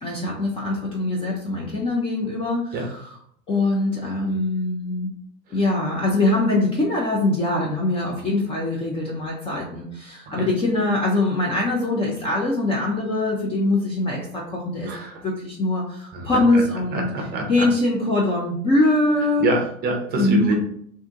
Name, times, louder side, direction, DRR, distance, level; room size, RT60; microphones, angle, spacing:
voice 1, 0.0-3.2 3.5-5.1 5.5-14.9 15.2-17.1 17.5-19.5 20.1-20.5, left 2 dB, 15° left, -3 dB, 0.6 m, -23 dB
voice 2, 14.9-15.2 16.1-16.2 16.9-17.6 19.4-20.5, right 2 dB, 25° right, 1 dB, 0.8 m, -25 dB
3.4 x 2.7 x 3.6 m, 0.65 s
figure-of-eight pair, 90°, 41 cm